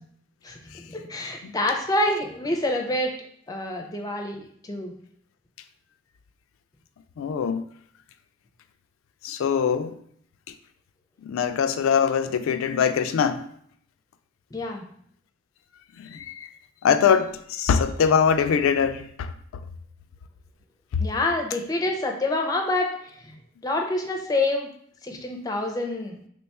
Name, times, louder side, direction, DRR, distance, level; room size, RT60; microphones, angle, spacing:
voice 1, 0.4-3.1 3.5-4.9 14.5-14.8 21.0-23.4 23.6-24.7 25.0-26.2, left 2 dB, 20° left, 0.4 m, -27 dB
voice 2, 7.2-7.6 9.2-9.9 11.2-13.5 16.0-16.5 16.8-19.3 20.9-21.0, left 7 dB, 85° left, 0.3 m, -22 dB
3.0 x 2.2 x 4.1 m
head